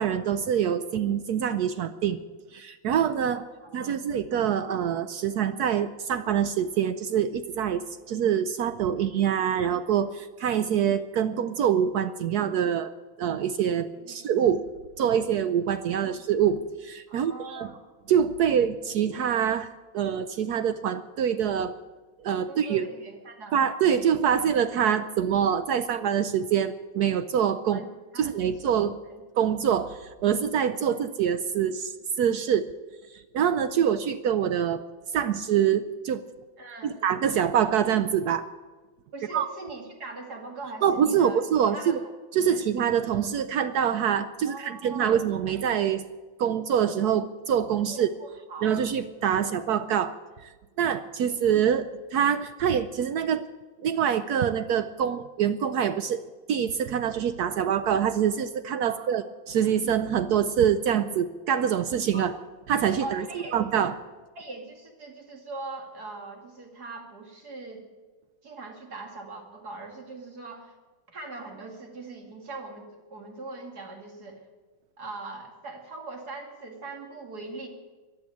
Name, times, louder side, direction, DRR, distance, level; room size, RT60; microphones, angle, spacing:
voice 1, 0.0-2.2 2.5-3.4 3.7-12.9 13.2-14.6 15.0-17.7 18.1-19.7 19.9-21.7 22.2-22.9 23.5-27.8 28.2-29.0 29.4-32.7 33.1-34.8 35.1-36.2 36.8-38.5 39.3-39.5 40.8-42.0 42.3-46.0 46.4-48.1 48.6-50.1 50.4-50.5 50.8-53.4 53.8-56.2 56.5-62.3 62.7-63.2 63.5-63.9, right 8 dB, 80° right, 11 dB, 0.8 m, -25 dB
voice 2, 3.3-3.8 14.0-14.3 16.0-16.2 17.1-17.8 22.5-23.6 27.7-28.3 28.6-28.7 29.1-29.2 36.6-37.0 39.1-41.4 41.7-42.0 42.5-42.7 44.4-45.2 47.9-48.8 58.8-59.2 62.1-62.4 63.0-63.6 63.8-63.9 64.4-67.9 68.4-70.8 71.1-74.4 75.0-77.7, right 3 dB, 50° right, 2 dB, 2.9 m, -41 dB
14.5 x 10.5 x 8.4 m, 1.3 s
omnidirectional pair, 2.3 m